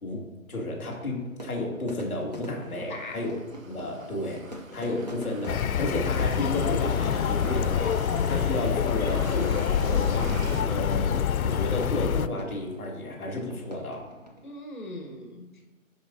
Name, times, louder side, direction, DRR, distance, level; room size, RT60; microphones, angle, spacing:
voice 1, 0.0-3.3 3.7-10.4 10.6-11.1 11.4-14.1, left 2 dB, 5° left, -15 dB, 0.9 m, -32 dB
Fire / Fireworks, 0.5-14.6, right 1 dB, 30° right, 0.5 m, -44 dB
sound 1, 2.5-11.9, right 2 dB, 70° right, 1.2 m, -42 dB
voice 2, 2.6-3.2 14.4-15.6, left 1 dB, 35° left, 1 dB, 1.1 m, -40 dB
sound 2, 5.5-12.3, left 8 dB, 80° left, 0.5 m, -26 dB
11.0 x 5.2 x 2.7 m, 1.2 s
hypercardioid pair, 170°, 42 cm